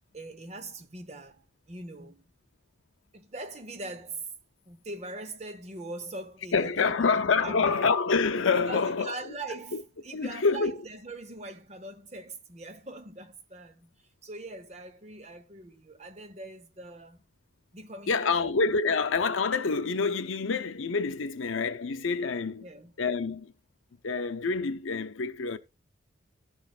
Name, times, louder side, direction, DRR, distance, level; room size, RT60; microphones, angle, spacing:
voice 1, 0.1-2.3 3.1-4.3 4.7-7.9 8.5-17.2 17.7-18.5 22.6-22.9, right 2 dB, 35° right, 0.9 m, -42 dB
voice 2, 6.5-9.3 9.7-9.8 10.1-10.8 18.1-22.7 23.0-23.5 24.0-25.6, left 4 dB, 90° left, 0.6 m, -27 dB
14.5 x 6.3 x 2.4 m
head